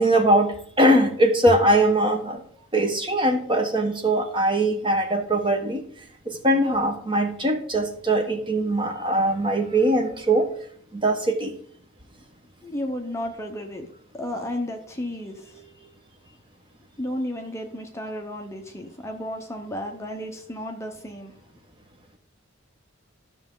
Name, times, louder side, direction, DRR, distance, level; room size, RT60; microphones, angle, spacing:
voice 1, 0.0-2.4 2.7-5.8 6.3-10.5 10.9-11.5, right 1 dB, 25° right, 4 dB, 1.0 m, -21 dB
voice 2, 12.6-13.8 14.1-15.6 17.0-21.4, left 1 dB, 15° left, 3 dB, 0.8 m, -33 dB
13.0 x 6.2 x 3.8 m, 0.64 s
head